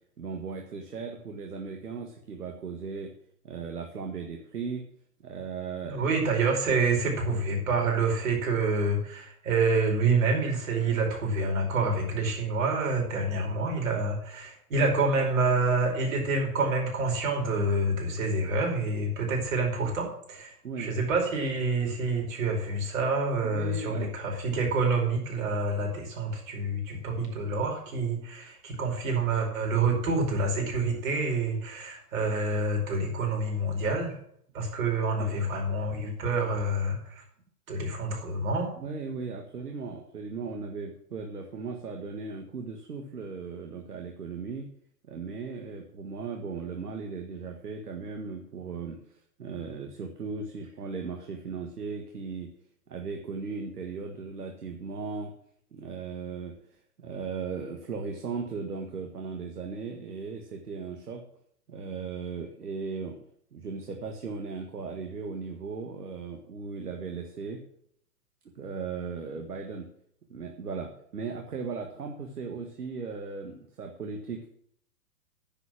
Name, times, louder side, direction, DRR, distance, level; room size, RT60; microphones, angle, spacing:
voice 1, 0.2-3.1 3.4-4.9 5.2-6.2 20.6-20.9 23.5-24.1 35.2-35.4 38.8-44.7 45.1-49.0 49.4-52.5 52.9-55.3 55.7-56.5 57.0-61.2 61.7-63.2 63.5-67.6 68.5-69.9 70.3-74.5, right 5 dB, 75° right, 3 dB, 1.7 m, -37 dB
voice 2, 5.8-34.1 34.5-37.2 37.7-38.7, right 3 dB, 60° right, 1 dB, 5.0 m, -27 dB
9.9 x 7.3 x 7.6 m, 0.67 s
figure-of-eight pair, 115°, 46 cm